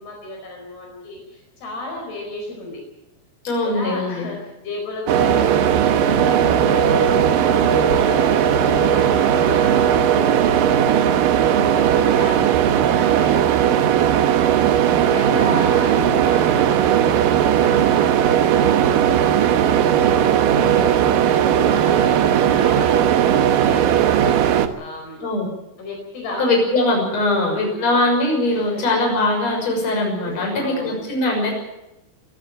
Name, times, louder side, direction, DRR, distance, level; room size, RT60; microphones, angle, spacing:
voice 1, 0.0-2.8 3.6-10.8 11.2-24.4 24.8-25.3 25.8-26.5 27.3-28.0 28.5-28.9 30.2-31.0, left 2 dB, 55° left, 0 dB, 6.5 m, -34 dB
voice 2, 3.4-4.3 15.5-15.6 25.2-25.5 26.4-31.5, left 2 dB, 35° left, 1 dB, 7.2 m, -21 dB
sound 1, 5.1-24.7, right 9 dB, 75° right, 2.1 m, -17 dB
23.5 x 15.0 x 9.0 m, 0.92 s
omnidirectional pair, 5.5 m